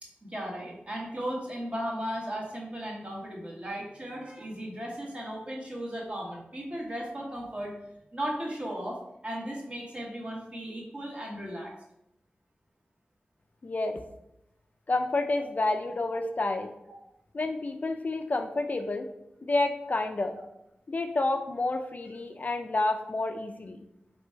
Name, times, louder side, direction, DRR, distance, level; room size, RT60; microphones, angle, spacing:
voice 1, 0.0-7.7 8.1-11.7 16.1-16.2, equal, 30° right, -2 dB, 1.3 m, -36 dB
voice 2, 13.6-14.0 14.9-16.7 17.3-19.1 19.4-20.4 20.9-23.8, left 2 dB, 45° left, 6 dB, 0.3 m, -29 dB
3.3 x 3.0 x 4.4 m, 0.83 s
wide cardioid pair, 75°, 4 cm